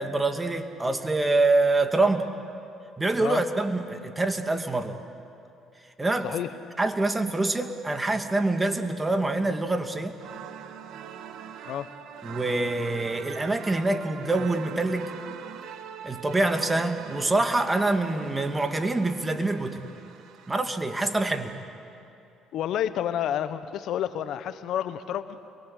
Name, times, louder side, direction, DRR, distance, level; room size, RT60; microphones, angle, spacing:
voice 1, 0.0-2.3 3.0-5.0 6.0-6.3 6.8-10.2 12.2-15.1 16.0-19.9 20.5-21.6, right 2 dB, 20° right, 7 dB, 2.3 m, -25 dB
sound 1, 10.2-20.6, right 8 dB, 65° right, 1.7 m, -42 dB
voice 2, 22.5-25.4, left 10 dB, 65° left, 12 dB, 1.0 m, -29 dB
30.0 x 22.5 x 8.4 m, 2.6 s
supercardioid pair, 65°, 0 cm